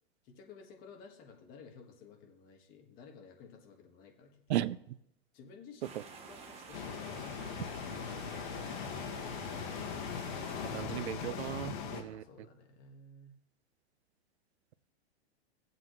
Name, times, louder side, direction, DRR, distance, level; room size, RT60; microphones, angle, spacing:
voice 1, 0.2-4.7 5.3-8.0 12.1-13.3, left 5 dB, 30° left, 1.6 m, -55 dB
voice 2, 4.5-5.0 5.9-6.0 10.7-12.2, right 13 dB, 90° right, 0.6 m, -35 dB
sound 1, 5.8-10.8, right 5 dB, 20° right, 1.1 m, -50 dB
sound 2, 6.7-12.0, left 6 dB, 50° left, 1.8 m, -40 dB
18.5 x 7.7 x 3.2 m
supercardioid pair, 155°, 32 cm